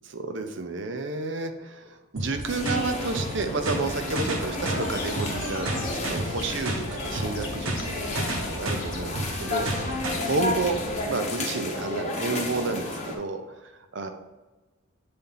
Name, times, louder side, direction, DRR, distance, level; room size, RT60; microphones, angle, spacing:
voice 1, 0.0-7.7 8.0-10.8 11.0-14.1, right 3 dB, 60° right, 8 dB, 0.6 m, -31 dB
sound 1, 2.2-10.2, right 1 dB, 85° right, 1.1 m, -32 dB
sound 2, 2.4-13.2, left 2 dB, 35° left, 0.9 m, -32 dB
sound 3, 4.8-11.1, left 2 dB, 75° left, 1.1 m, -41 dB
7.0 x 4.3 x 3.9 m, 1.2 s
head